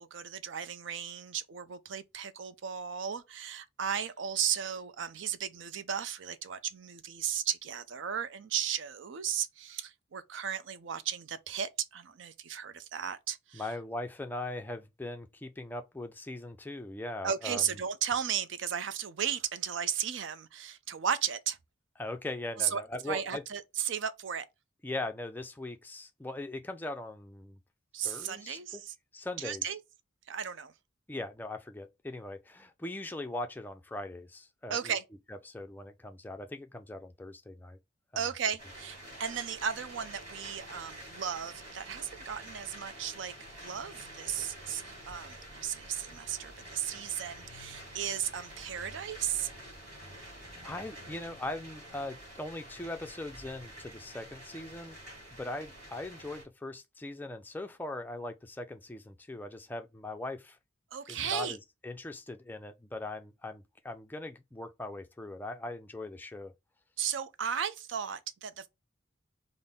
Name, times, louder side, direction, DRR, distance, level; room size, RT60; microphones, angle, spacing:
voice 1, 0.0-13.7 17.2-21.6 22.6-22.8 23.1-24.5 27.9-28.9 29.4-29.8 30.3-30.7 34.7-35.0 38.2-43.3 43.6-49.5 60.9-61.6 67.0-68.7, right 8 dB, 70° right, 0.4 m, -35 dB
voice 2, 13.5-17.6 22.0-23.4 24.8-27.6 28.0-28.8 29.1-29.7 31.1-34.9 35.3-37.8 38.1-38.2 50.3-55.0 55.4-60.6 61.1-61.6 61.8-66.5, left 2 dB, 10° left, 0.4 m, -40 dB
sound 1, 38.6-56.4, right 1 dB, 35° right, 2.0 m, -48 dB
3.5 x 2.0 x 4.0 m
head